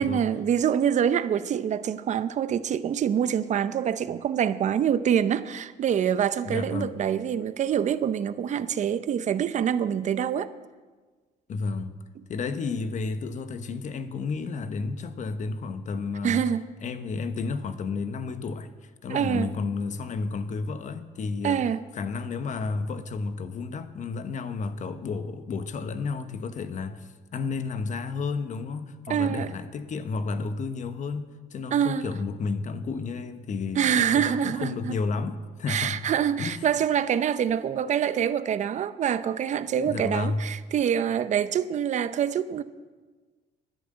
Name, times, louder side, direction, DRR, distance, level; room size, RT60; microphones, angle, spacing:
voice 1, 0.0-10.5 16.2-16.7 19.1-19.5 21.4-21.8 29.1-29.5 31.7-32.1 33.8-34.9 35.7-42.6, right 8 dB, 45° right, 0.6 m, -25 dB
voice 2, 6.4-7.0 11.5-12.0 12.3-16.5 16.8-21.7 22.0-36.1 36.4-36.7 39.8-40.5, left 4 dB, 45° left, 1.0 m, -32 dB
11.0 x 10.5 x 7.8 m
cardioid pair, 110°, 17 cm